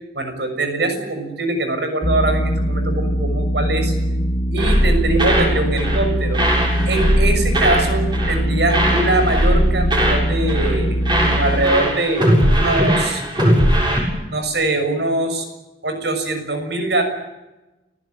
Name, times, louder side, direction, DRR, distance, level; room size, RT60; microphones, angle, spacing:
voice 1, 0.1-4.0 4.5-6.4 6.9-13.2 14.3-15.5 15.8-17.0, right 2 dB, 70° right, 7 dB, 6.5 m, -22 dB
sound 1, 2.0-11.7, equal, 35° left, 1.5 m, -21 dB
sound 2, 4.6-5.5 5.8-6.1 6.3-8.4 8.7-10.2 10.5-10.8 11.0-14.0, equal, 25° right, 7.1 m, -19 dB
29.5 x 16.0 x 9.2 m, 1.1 s
head